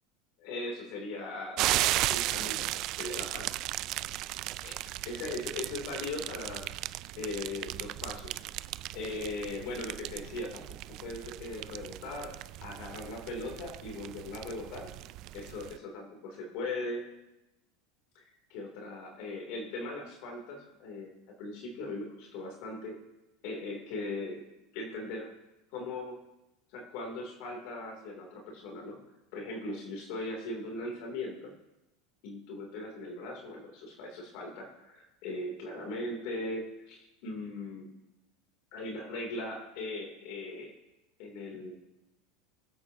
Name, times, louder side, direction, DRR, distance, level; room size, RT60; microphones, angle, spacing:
voice 1, 0.4-3.6 4.6-4.8 5.0-6.7 7.2-8.4 8.9-12.3 12.6-14.9 15.3-17.1 18.1-21.1 21.4-22.9 23.4-24.4 24.7-25.3 25.7-26.2 26.7-29.0 29.3-31.5 32.2-37.9 38.7-40.7 41.2-41.7, left 2 dB, 60° left, 0 dB, 3.0 m, -39 dB
sound 1, 1.6-15.8, right 16 dB, 50° right, 0.3 m, -36 dB
21.0 x 8.3 x 2.9 m, 0.94 s
supercardioid pair, 135°, 0 cm